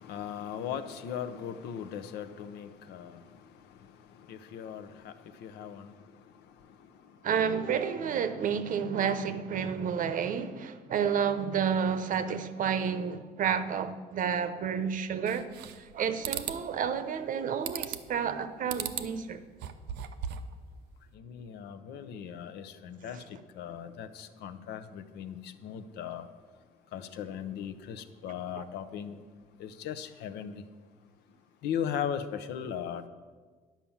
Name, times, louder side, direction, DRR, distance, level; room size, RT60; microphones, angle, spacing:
voice 1, 0.0-7.3 21.1-26.3 26.9-29.3 29.6-30.7 31.6-33.1, left 8 dB, 80° left, 0.7 m, -39 dB
voice 2, 7.2-15.5 15.8-19.4 28.6-28.7, right 7 dB, 50° right, 0.8 m, -30 dB
sound 1, 15.3-15.9 16.2-16.6 17.7-18.2 18.7-19.1 19.5-20.5, right 9 dB, 85° right, 0.7 m, -37 dB
10.5 x 5.7 x 7.2 m
cardioid pair, 110°, 17 cm